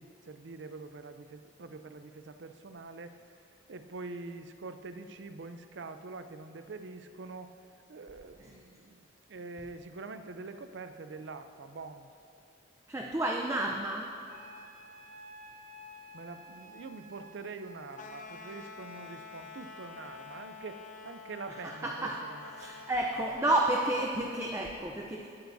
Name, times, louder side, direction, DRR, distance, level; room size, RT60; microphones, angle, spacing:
voice 1, 0.0-3.2 3.7-7.6 7.9-12.1 16.1-22.9, right 3 dB, 70° right, 9 dB, 0.5 m, -45 dB
voice 2, 12.9-14.1 21.6-22.2 22.6-25.3, right 1 dB, 15° right, 0 dB, 0.6 m, -31 dB
Wind instrument woodwind instrument, 14.3-18.2, equal, 45° right, 0.8 m, -51 dB
sound 1, 17.9-24.2, left 4 dB, 40° left, 0.6 m, -48 dB
20.0 x 9.2 x 2.7 m, 2.5 s
head